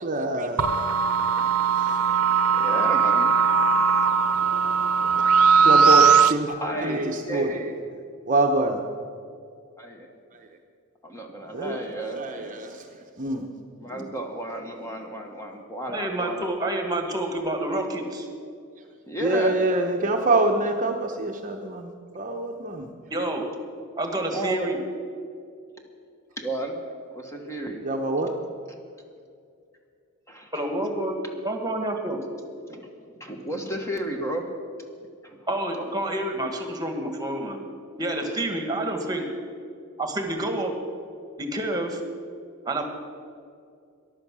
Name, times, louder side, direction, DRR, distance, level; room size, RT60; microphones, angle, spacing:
voice 1, 0.0-0.7 5.6-7.8 8.3-8.8 11.5-12.8 13.2-13.5 19.2-22.9 27.8-28.4, right 2 dB, 35° right, 3 dB, 0.8 m, -26 dB
sound 1, 0.6-6.3, right 6 dB, 70° right, 0.7 m, -19 dB
voice 2, 2.6-3.5 4.1-4.3 6.6-7.6 9.8-10.1 11.0-12.6 13.8-16.5 19.1-19.6 24.3-24.7 26.4-26.8 27.1-27.8 30.3-30.6 32.7-34.5 35.2-35.4, right 1 dB, 15° left, 3 dB, 1.2 m, -33 dB
voice 3, 15.9-18.3 23.1-23.5 24.0-24.8 30.5-31.2 31.4-32.2 35.5-37.6 38.0-39.3 40.0-40.7 41.4-42.0 42.6-42.8, right 1 dB, 15° right, 4 dB, 1.6 m, -28 dB
14.0 x 11.0 x 6.2 m, 2.3 s
head